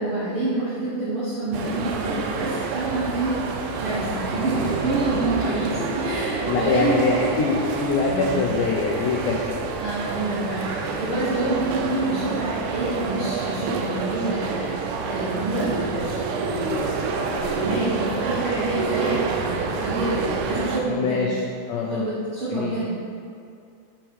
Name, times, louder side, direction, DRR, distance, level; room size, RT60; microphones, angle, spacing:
voice 1, 0.0-3.4 3.8-7.3 8.0-8.4 9.7-21.3 21.9-22.9, right 2 dB, 65° right, -12 dB, 1.4 m, -27 dB
sound 1, 1.5-20.8, right 4 dB, 80° right, 1.9 m, -28 dB
sound 2, 3.5-3.6 3.8-7.6, left 1 dB, 65° left, 2.2 m, -34 dB
voice 2, 6.5-9.7 20.9-21.4 21.7-22.1 22.5-22.8, left 4 dB, 85° left, -2 dB, 1.8 m, -23 dB
5.6 x 4.5 x 4.6 m, 2.4 s
omnidirectional pair, 4.2 m